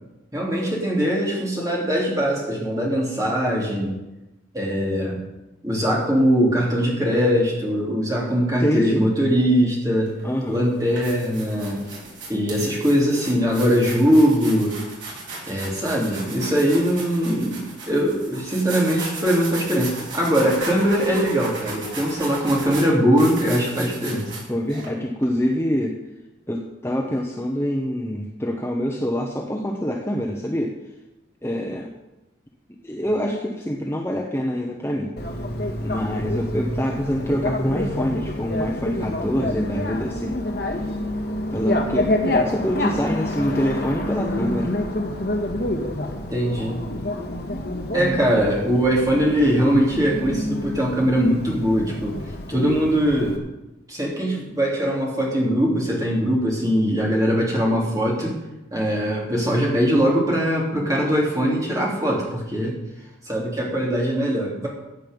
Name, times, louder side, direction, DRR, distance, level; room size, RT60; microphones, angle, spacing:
voice 1, 0.3-3.9 4.5-5.3 5.6-10.1 10.5-11.8 12.3-14.8 15.5-24.2 46.3-46.8 47.9-52.2 52.5-53.4 53.9-58.4 58.7-62.8 63.2-64.7, equal, 20° right, -4 dB, 3.3 m, -21 dB
voice 2, 8.6-9.0 10.2-10.6 24.5-26.0 26.5-30.8 31.4-31.9 32.8-35.1 35.8-40.4 41.5-44.7 47.9-48.2, equal, 15° left, 0 dB, 1.0 m, -25 dB
sound 1, 10.1-10.2 10.7-24.9, right 3 dB, 70° right, 5.9 m, -36 dB
Bicycle, 35.2-53.4, left 1 dB, 55° left, 1.8 m, -28 dB
15.0 x 8.6 x 5.4 m, 1.0 s
head